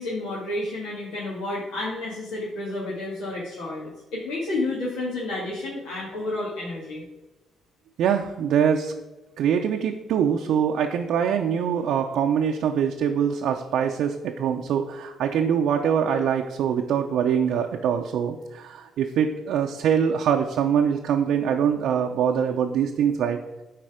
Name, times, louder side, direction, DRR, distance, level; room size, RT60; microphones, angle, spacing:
voice 1, 0.0-7.0, left 2 dB, 85° left, -7 dB, 2.1 m, -30 dB
voice 2, 8.0-8.9 9.4-23.4, right 8 dB, 80° right, 2 dB, 0.6 m, -23 dB
10.5 x 4.2 x 5.0 m, 1.1 s
cardioid pair, 90°, 0 cm